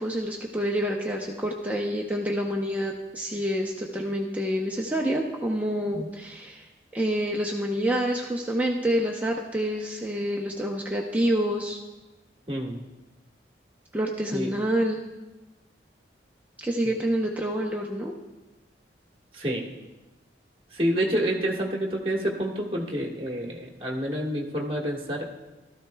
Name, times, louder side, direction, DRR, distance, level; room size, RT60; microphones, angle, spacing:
voice 1, 0.0-6.7 6.9-11.8 13.9-15.0 16.6-18.1, equal, 10° right, -1 dB, 0.7 m, -27 dB
voice 2, 12.5-12.8 14.3-14.5 16.8-17.0 19.3-19.7 20.7-25.2, equal, 30° right, -1 dB, 1.5 m, -28 dB
16.0 x 13.5 x 2.3 m, 1.1 s
head